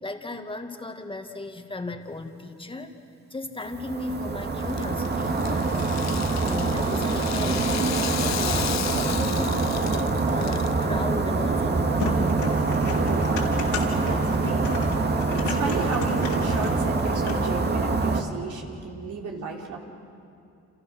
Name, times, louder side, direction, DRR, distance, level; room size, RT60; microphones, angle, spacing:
voice 1, 0.0-3.0 3.3-5.8 6.5-8.0 8.4-12.4, left 2 dB, 15° left, 5 dB, 2.2 m, -36 dB
sound 1, 3.7-18.2, right 3 dB, 35° right, 2.2 m, -25 dB
Rattle (instrument), 4.6-10.8, left 11 dB, 60° left, 0.8 m, -34 dB
sound 2, 11.9-17.5, left 5 dB, 80° left, 4.1 m, -35 dB
voice 2, 13.0-19.8, right 4 dB, 75° right, 0 dB, 4.0 m, -34 dB
29.5 x 27.5 x 6.4 m, 2.6 s
cardioid pair, 90°, 30 cm